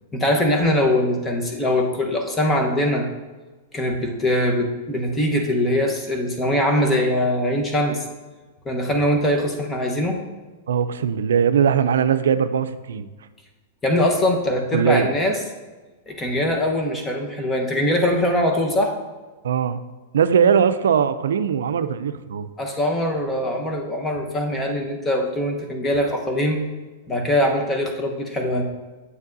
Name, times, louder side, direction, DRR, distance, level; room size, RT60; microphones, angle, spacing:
voice 1, 0.1-3.1 3.7-8.0 8.6-10.2 13.8-15.4 16.1-18.9 22.6-26.6 27.1-28.6, left 1 dB, 15° left, 2 dB, 1.1 m, -22 dB
voice 2, 10.7-13.1 14.7-15.1 19.4-19.8 20.1-22.5, right 7 dB, 85° right, 12 dB, 0.4 m, -20 dB
8.3 x 7.2 x 2.7 m, 1.3 s
hypercardioid pair, 125°, 0 cm